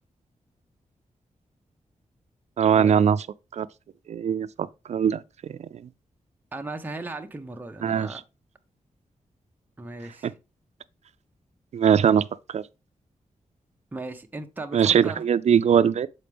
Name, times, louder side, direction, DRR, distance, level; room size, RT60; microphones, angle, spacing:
voice 1, 2.6-3.2 3.5-3.7 4.1-5.2 5.5-5.7 7.8-8.2 10.2-10.3 11.7-12.2 12.5-12.6 14.7-16.1, right 8 dB, 60° right, 0.4 m, -21 dB
voice 2, 6.5-8.2 9.8-10.3 13.9-15.2, right 2 dB, 15° right, 0.6 m, -37 dB
7.2 x 4.2 x 3.3 m
wide cardioid pair, 160°, 13 cm